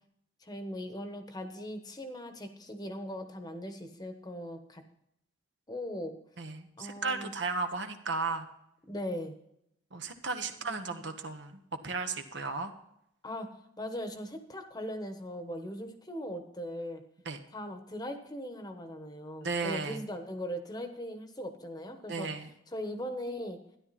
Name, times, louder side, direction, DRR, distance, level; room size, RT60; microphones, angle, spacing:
voice 1, 0.4-4.8 5.7-6.1 6.8-7.3 8.9-9.4 10.7-11.0 13.2-13.5 13.8-17.0 17.5-22.3 22.7-23.6, equal, 20° left, 6 dB, 1.1 m, -39 dB
voice 2, 6.4-8.5 9.9-12.7 17.2-17.4 19.4-20.0 22.1-22.5, right 4 dB, 60° right, 7 dB, 1.2 m, -35 dB
13.0 x 11.0 x 4.2 m, 0.76 s
head